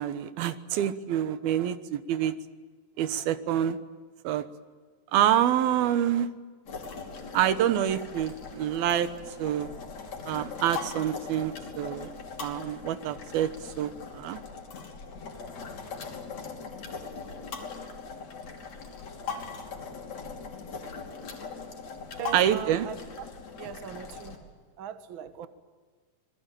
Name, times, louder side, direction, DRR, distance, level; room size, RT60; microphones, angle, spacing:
voice 1, 0.0-2.4 3.0-3.8 4.2-4.5 5.1-6.3 7.3-9.1 9.4-9.7 10.3-12.1 12.4-14.4 22.3-22.9, right 11 dB, 80° right, 12 dB, 3.0 m, -27 dB
sound 1, 6.7-24.4, left 5 dB, 50° left, 4.1 m, -40 dB
voice 2, 22.2-23.3 23.6-24.4 24.8-25.5, right 9 dB, 60° right, 11 dB, 1.3 m, -40 dB
27.5 x 21.0 x 9.1 m, 1.5 s
omnidirectional pair, 4.3 m